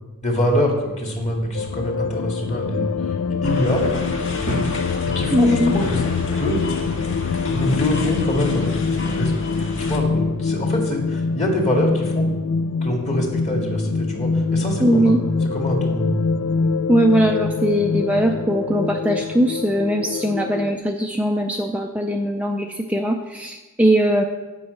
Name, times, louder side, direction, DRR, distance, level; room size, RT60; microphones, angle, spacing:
voice 1, 0.2-4.0 5.1-6.0 6.3-6.6 7.5-8.7 9.0-9.3 9.8-12.3 12.8-16.2, equal, 30° left, 0 dB, 2.0 m, -24 dB
sound 1, 1.5-20.8, left 5 dB, 75° left, 0.4 m, -24 dB
sound 2, 3.4-10.0, left 1 dB, 60° left, 1.3 m, -30 dB
voice 2, 5.3-5.7 14.8-15.2 16.9-24.2, equal, 5° right, 2 dB, 0.4 m, -20 dB
8.6 x 5.5 x 8.0 m, 1.2 s
head